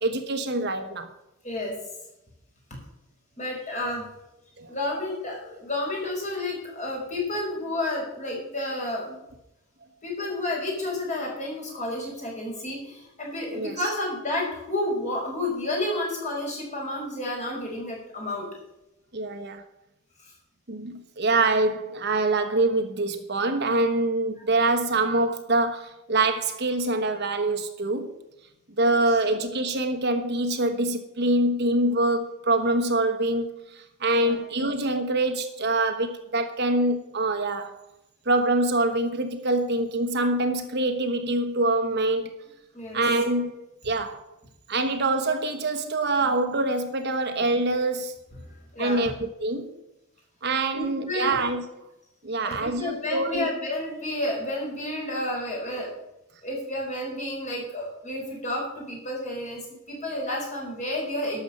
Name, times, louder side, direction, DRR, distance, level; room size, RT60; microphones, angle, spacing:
voice 1, 0.0-1.1 4.6-4.7 13.5-13.7 19.1-19.6 20.7-28.1 28.8-37.8 38.3-42.3 42.9-43.5 43.8-44.2 44.7-48.1 48.8-49.7 50.4-51.6 52.2-53.5, right 2 dB, 50° right, 1.1 m, -25 dB
voice 2, 3.4-4.0 4.7-9.2 10.0-18.5 20.2-20.3 28.8-29.0 34.1-34.4 42.7-43.0 48.4-49.1 50.7-51.4 52.3-55.9 56.4-61.4, left 1 dB, 35° left, 5.1 m, -31 dB
12.0 x 7.1 x 7.3 m
head